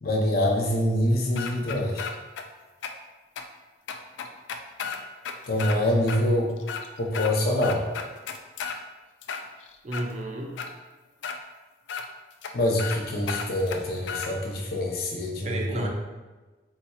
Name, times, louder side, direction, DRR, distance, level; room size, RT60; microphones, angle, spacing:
voice 1, 0.0-2.1 5.5-6.5 7.0-7.8 12.5-15.9, left 1 dB, 55° left, -1 dB, 0.7 m, -25 dB
sound 1, 1.4-2.4 2.8-2.9 3.4-3.5 3.9-5.8 6.1-6.2 6.6-7.3 7.6-8.8 9.2-10.1 10.6-10.7 11.2-11.4 11.9-12.0 12.4-12.5 12.8-13.0 13.3-14.3, left 6 dB, 85° left, 0.4 m, -33 dB
voice 2, 9.8-10.6 15.4-15.9, right 1 dB, 40° right, 2 dB, 0.5 m, -32 dB
4.1 x 2.3 x 4.2 m, 1.2 s
head